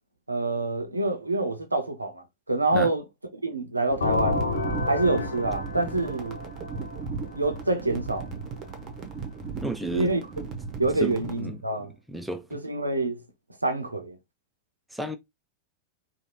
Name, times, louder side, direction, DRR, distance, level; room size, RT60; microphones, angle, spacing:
voice 1, 0.3-3.0 3.4-4.4 4.9-6.4 7.3-8.3 9.9-10.2 10.8-11.9 12.5-13.2 13.6-14.2, right 2 dB, 80° right, 0.5 m, -26 dB
sound 1, 3.9-11.4, right 5 dB, 30° right, 0.7 m, -36 dB
sound 2, 4.0-7.7, left 3 dB, 70° left, 0.5 m, -30 dB
voice 2, 9.6-10.1 11.0-11.6 12.1-12.6 14.9-15.2, right 1 dB, 5° right, 0.4 m, -32 dB
2.7 x 2.2 x 2.9 m
figure-of-eight pair, 90°, 0 cm